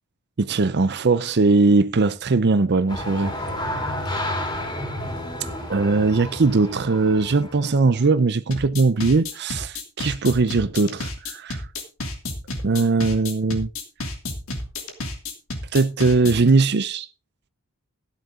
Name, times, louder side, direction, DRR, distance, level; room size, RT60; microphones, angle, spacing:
voice 1, 0.4-3.3 5.7-11.6 12.6-13.7 15.7-17.1, right 3 dB, 50° right, 0.6 m, -20 dB
sound 1, 2.9-8.0, left 1 dB, 20° left, 3.7 m, -31 dB
sound 2, 8.5-16.5, left 2 dB, 65° left, 2.8 m, -31 dB
13.0 x 11.0 x 3.7 m
head